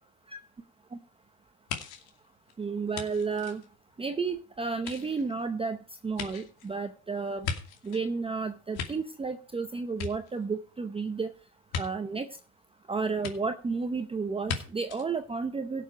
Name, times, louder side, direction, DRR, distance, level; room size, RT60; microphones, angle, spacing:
sound 1, 1.7-4.3 4.7-8.1 8.5-9.6 9.9-10.8 11.7-11.9 13.2-13.3 14.4-14.6 14.9-15.1, left 6 dB, 70° left, 2.6 m, -38 dB
voice 1, 2.6-3.6 4.0-5.8 6.0-7.5 7.8-11.3 11.7-12.3 12.9-15.8, right 4 dB, 15° right, 8 dB, 0.8 m, -32 dB
17.0 x 6.8 x 5.1 m, 0.39 s
cardioid pair, 130°, 39 cm